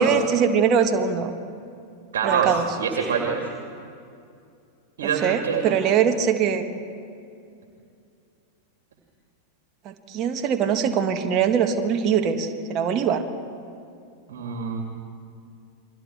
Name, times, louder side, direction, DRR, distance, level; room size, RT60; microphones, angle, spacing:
voice 1, 0.0-1.3 2.2-2.6 5.2-6.6 9.8-13.2, right 7 dB, 35° right, 5 dB, 1.7 m, -22 dB
voice 2, 2.1-3.4 5.0-5.8 14.3-14.8, right 6 dB, 60° right, 1 dB, 2.5 m, -25 dB
29.0 x 23.0 x 4.6 m, 2.5 s
figure-of-eight pair, 90°, 0 cm